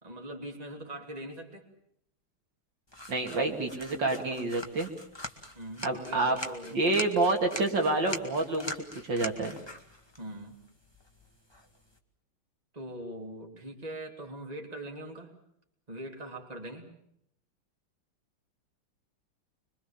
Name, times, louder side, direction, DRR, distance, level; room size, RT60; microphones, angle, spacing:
voice 1, 0.0-1.7 5.5-6.8 10.2-10.6 12.7-15.4 15.9-16.9, right 1 dB, 20° right, 2 dB, 3.2 m, -42 dB
sound 1, 2.9-12.0, left 1 dB, 10° left, 2.0 m, -44 dB
voice 2, 3.1-4.9 5.8-6.4 6.7-8.8 9.0-9.6, right 2 dB, 60° right, 2 dB, 3.2 m, -28 dB
26.5 x 23.5 x 7.3 m, 0.73 s
omnidirectional pair, 2.3 m